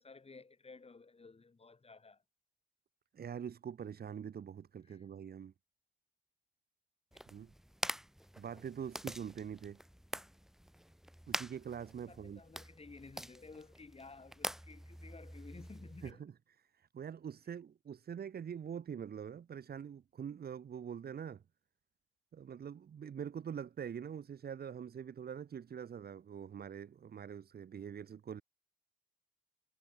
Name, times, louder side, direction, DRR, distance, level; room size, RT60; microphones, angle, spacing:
voice 1, 0.0-2.2 4.8-5.1 7.1-7.2 12.1-16.2 17.4-17.5, left 4 dB, 30° left, 4.7 m, -55 dB
voice 2, 3.1-5.5 7.3-7.5 8.4-9.8 11.3-12.4 16.0-16.3 16.6-21.4 22.3-28.4, right 8 dB, 55° right, 4.6 m, -44 dB
sound 1, 7.1-16.1, equal, ahead, 1.6 m, -45 dB
hypercardioid pair, 40°, 19 cm